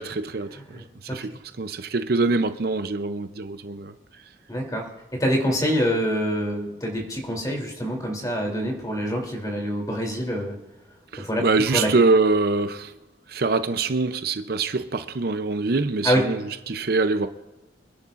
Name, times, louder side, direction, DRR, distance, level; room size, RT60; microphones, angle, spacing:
voice 1, 0.0-0.6 1.1-1.3 1.6-3.9 11.1-12.9 13.3-17.3, right 3 dB, 55° right, 0.6 m, -24 dB
voice 2, 0.7-1.2 4.5-4.9 5.2-10.5 11.2-11.4 11.7-11.9 16.0-16.2, equal, 20° left, 3.0 m, -25 dB
26.0 x 11.0 x 2.5 m
head